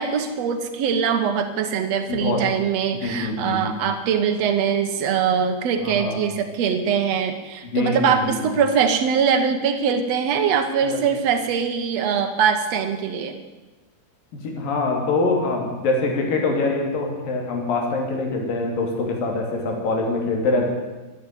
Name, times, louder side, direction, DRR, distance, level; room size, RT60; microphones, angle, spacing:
voice 1, 0.0-13.4, right 7 dB, 65° right, 7 dB, 1.6 m, -22 dB
voice 2, 2.1-2.4 3.0-3.8 5.8-6.2 7.7-8.3 10.9-11.0 14.4-20.6, left 3 dB, 65° left, 2 dB, 4.2 m, -24 dB
13.0 x 11.0 x 9.2 m, 1.2 s
omnidirectional pair, 4.4 m